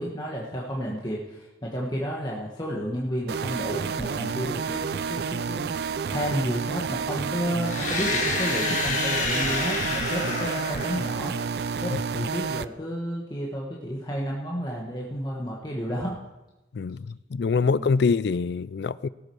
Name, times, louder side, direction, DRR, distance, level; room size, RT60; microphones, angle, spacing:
voice 1, 0.0-11.3 11.8-16.2 17.6-17.9, equal, 20° left, 1.4 m, -32 dB
sound 1, 3.3-12.7, right 5 dB, 55° right, 0.3 m, -30 dB
sound 2, 7.6-11.6, left 3 dB, 40° left, 1.7 m, -29 dB
voice 2, 16.7-19.1, left 5 dB, 60° left, 0.4 m, -25 dB
17.5 x 7.7 x 4.7 m
head